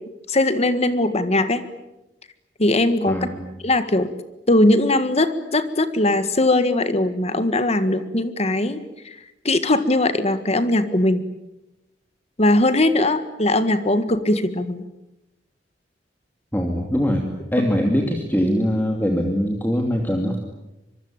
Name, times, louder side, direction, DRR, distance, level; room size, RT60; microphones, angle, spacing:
voice 1, 0.3-1.6 2.6-3.3 3.6-4.1 4.5-9.1 9.4-11.2 12.4-14.8, left 1 dB, 35° left, 11 dB, 1.7 m, -20 dB
voice 2, 3.1-3.5 16.5-17.2 17.5-20.5, equal, 10° left, 2 dB, 2.6 m, -22 dB
25.0 x 23.0 x 9.0 m, 0.95 s
head